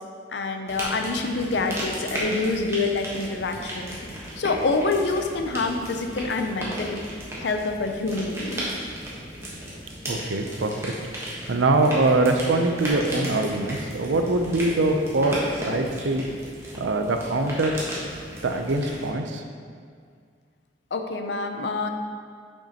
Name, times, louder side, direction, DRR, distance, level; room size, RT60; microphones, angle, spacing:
voice 1, 0.3-4.0 4.4-7.0 7.4-8.7 20.9-21.9, left 3 dB, 60° left, 5 dB, 0.5 m, -26 dB
sound 1, 0.7-19.1, equal, 15° right, 1.1 m, -35 dB
voice 2, 10.1-10.9 11.5-15.4 15.7-16.2 16.8-17.8 18.4-19.4, right 2 dB, 75° right, 5 dB, 0.5 m, -23 dB
6.4 x 6.0 x 2.9 m, 2.1 s
head